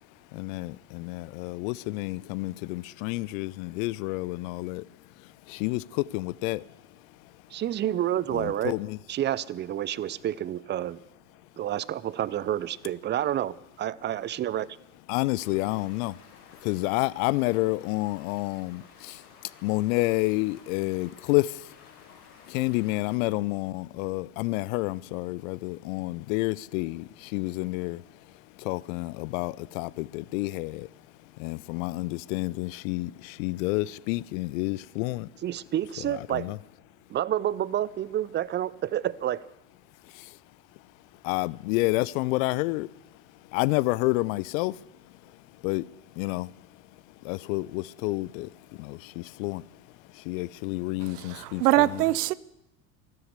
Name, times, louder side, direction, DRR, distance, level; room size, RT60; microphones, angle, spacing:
voice 1, 0.3-4.8 5.5-6.6 8.3-9.0 15.1-16.2 16.6-19.2 19.6-21.7 22.5-28.0 28.6-30.9 31.4-35.3 36.1-36.6 40.1-40.3 41.2-42.9 43.5-44.8 45.6-45.9 46.2-46.5 47.2-49.7 50.1-52.0, left 21 dB, 60° left, 0.6 m, -29 dB
voice 2, 7.5-8.8 9.1-11.0 11.6-14.7 35.4-36.5 37.1-39.4, right 11 dB, 25° right, 0.4 m, -29 dB
Stream, 15.4-23.1, left 5 dB, 80° left, 4.4 m, -54 dB
voice 3, 51.0-52.3, right 16 dB, 75° right, 0.7 m, -24 dB
13.0 x 12.5 x 8.0 m
hypercardioid pair, 85°, 46 cm